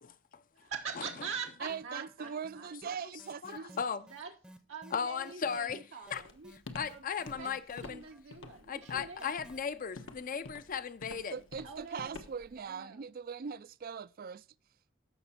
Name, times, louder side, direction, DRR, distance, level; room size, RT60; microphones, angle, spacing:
voice 1, 0.6-2.3 2.5-2.7 4.0-4.3 4.7-6.5 6.9-7.0 7.4-7.5 7.8-9.3 11.6-12.2 12.6-13.0, right 6 dB, 85° right, 1.2 m, -43 dB
voice 2, 1.6-3.8 11.1-14.5, right 6 dB, 50° right, 0.4 m, -41 dB
sound 1, 1.7-2.2 2.4-9.6, equal, 5° right, 0.7 m, -55 dB
voice 3, 4.9-5.8 6.1-6.2 6.5-8.0 8.7-11.3, left 6 dB, 45° left, 0.6 m, -36 dB
Walk footsteps, 6.1-12.6, left 3 dB, 80° left, 1.2 m, -48 dB
14.0 x 6.0 x 4.3 m
head